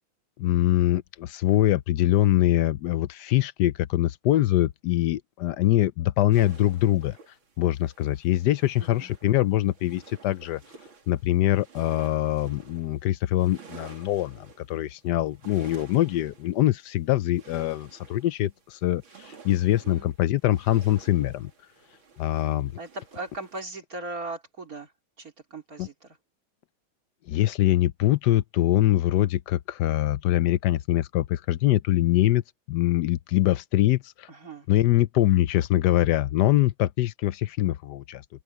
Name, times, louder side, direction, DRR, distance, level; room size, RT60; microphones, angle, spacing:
voice 1, 0.4-7.2 7.6-10.6 11.1-21.5 22.2-22.7 25.8-25.9 27.3-32.4 32.7-34.3 34.7-38.2, left 14 dB, 70° left, 1.0 m, -23 dB
sound 1, 6.3-23.6, right 5 dB, 75° right, 3.8 m, -51 dB
voice 2, 8.8-9.1 19.8-20.1 22.8-24.9 25.2-25.9 34.3-34.7, right 2 dB, 45° right, 3.6 m, -38 dB
omnidirectional pair, 2.2 m